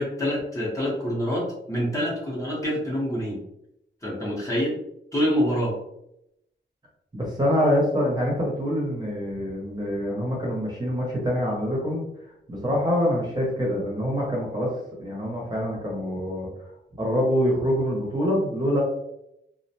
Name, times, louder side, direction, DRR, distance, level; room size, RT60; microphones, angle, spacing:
voice 1, 0.0-3.4 4.0-4.8 5.1-5.7, equal, 15° left, -6 dB, 0.7 m, -26 dB
voice 2, 7.1-12.0 12.5-14.7 15.0-16.5 17.0-18.8, equal, 20° right, -4 dB, 0.7 m, -25 dB
2.4 x 2.1 x 2.7 m, 0.80 s
wide cardioid pair, 165°, 20 cm